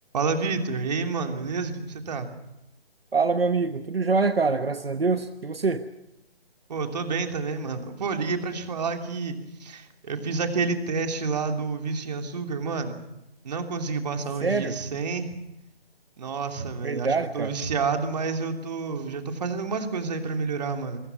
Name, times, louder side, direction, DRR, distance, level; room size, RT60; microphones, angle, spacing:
voice 1, 0.1-2.3 6.7-12.9 13.4-15.3 16.2-21.0, right 4 dB, 45° right, 4 dB, 3.1 m, -29 dB
voice 2, 3.1-5.8 14.4-14.8 16.8-17.6, right 4 dB, 75° right, 9 dB, 1.3 m, -25 dB
26.5 x 24.0 x 6.0 m, 0.87 s
figure-of-eight pair, 145°, 30 cm